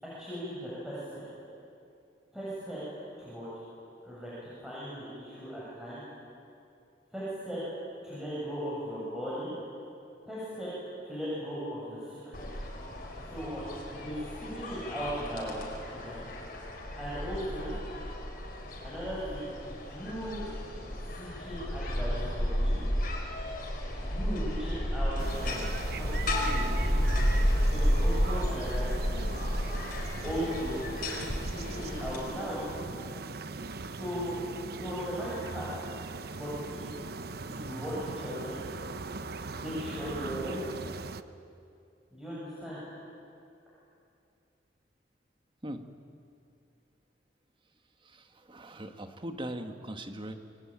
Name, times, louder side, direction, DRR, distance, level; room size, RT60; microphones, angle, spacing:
voice 1, 0.0-1.4 2.3-2.8 3.2-3.5 4.0-6.0 7.1-7.6 8.0-9.5 10.2-10.7 11.0-12.4 13.3-15.6 15.9-16.2 17.0-17.7 18.8-20.5 21.1-22.9 23.9-27.1 27.7-29.1 30.2-30.8 31.5-32.6 33.8-34.4 34.7-35.7 36.4-37.0 37.5-38.6 39.5-40.6 42.1-42.8, equal, 5° right, -9 dB, 7.4 m, -38 dB
sound 1, 12.3-32.2, equal, 50° left, 5.0 m, -32 dB
sound 2, 25.2-41.2, right 3 dB, 60° right, 0.9 m, -40 dB
voice 2, 48.5-50.3, right 1 dB, 30° right, 6 dB, 1.7 m, -39 dB
27.5 x 23.5 x 8.9 m, 2.6 s
head